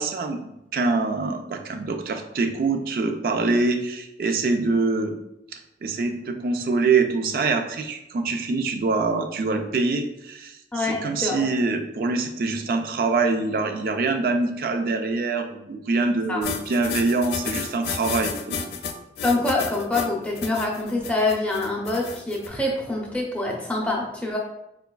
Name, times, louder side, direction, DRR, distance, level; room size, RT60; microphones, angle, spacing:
voice 1, 0.0-5.1 5.5-18.7, right 3 dB, 55° right, 6 dB, 0.3 m, -25 dB
voice 2, 10.7-11.5 16.3-16.4 19.2-24.4, left 2 dB, 5° left, -2 dB, 0.6 m, -25 dB
sound 1, 16.4-22.5, left 6 dB, 65° left, 0.3 m, -32 dB
4.8 x 2.3 x 2.2 m, 0.87 s
head